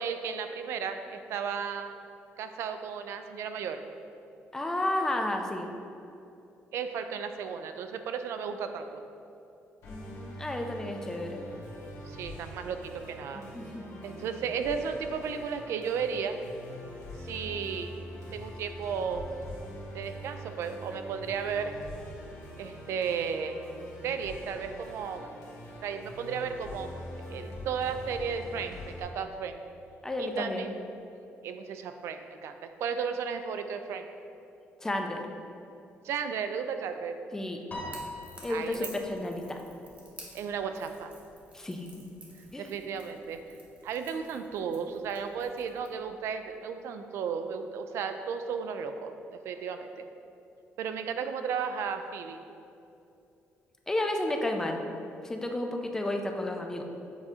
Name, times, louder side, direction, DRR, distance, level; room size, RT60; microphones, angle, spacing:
voice 1, 0.0-1.9 2.4-3.8 6.7-9.0 12.1-13.4 14.0-16.4 17.2-17.9 18.3-19.3 19.9-21.8 22.6-23.6 24.0-25.4 25.8-26.9 27.3-29.6 30.2-30.7 31.4-34.1 36.0-37.2 38.5-38.9 40.3-41.1 42.6-43.4 43.8-49.1 49.4-50.1 50.8-52.4, right 6 dB, 70° right, 7 dB, 0.3 m, -34 dB
voice 2, 4.5-5.7 9.9-11.4 13.5-13.8 30.0-30.7 34.8-35.2 37.3-37.6 38.4-39.6 41.5-42.1 42.5-42.7 53.9-54.8 55.2-56.8, left 1 dB, 10° left, 3 dB, 0.4 m, -32 dB
Musical instrument, 9.8-29.0, equal, 70° left, 1.2 m, -44 dB
Piano, 37.7-40.2, left 1 dB, 35° left, 1.1 m, -43 dB
Crackle / Crack, 37.9-46.0, right 2 dB, 30° right, 0.8 m, -51 dB
7.2 x 2.7 x 4.8 m, 2.7 s
cardioid pair, 165°, 5 cm